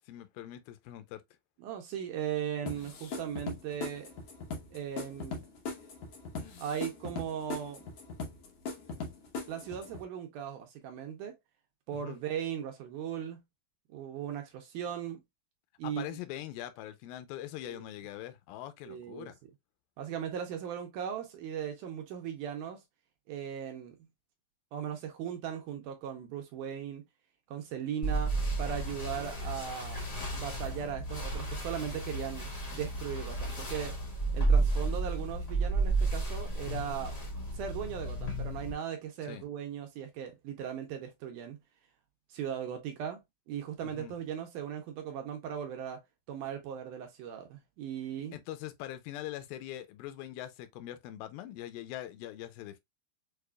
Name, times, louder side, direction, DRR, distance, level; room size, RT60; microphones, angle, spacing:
voice 1, 0.1-1.2 11.9-12.2 15.8-19.4 39.3-39.4 43.8-44.1 48.3-52.8, left 13 dB, 90° left, 2.4 m, -42 dB
voice 2, 1.6-4.1 4.7-5.4 6.6-7.9 9.5-11.3 11.9-13.4 13.9-15.2 15.8-16.2 17.7-17.9 18.9-19.3 20.0-22.8 23.3-23.9 24.7-27.0 27.5-30.0 30.3-34.0 34.3-37.2 37.5-41.6 42.3-43.2 43.5-46.0 46.3-48.4, right 9 dB, 80° right, 2.0 m, -38 dB
sound 1, 2.7-10.0, left 4 dB, 70° left, 1.4 m, -40 dB
sound 2, 28.0-38.7, right 2 dB, 35° left, 1.4 m, -32 dB
6.5 x 2.3 x 2.2 m
omnidirectional pair, 4.1 m